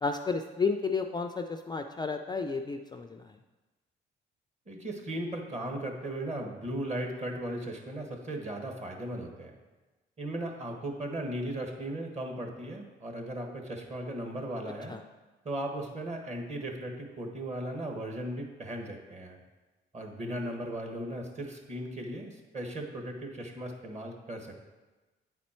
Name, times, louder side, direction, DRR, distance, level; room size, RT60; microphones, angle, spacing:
voice 1, 0.0-3.4 14.9-15.0, left 4 dB, 20° left, 6 dB, 0.3 m, -32 dB
voice 2, 4.7-9.6 10.2-15.0 15.4-19.4 19.9-24.7, right 1 dB, 35° right, 3 dB, 1.3 m, -37 dB
8.8 x 4.2 x 4.3 m, 1.2 s
cardioid pair, 90°, 20 cm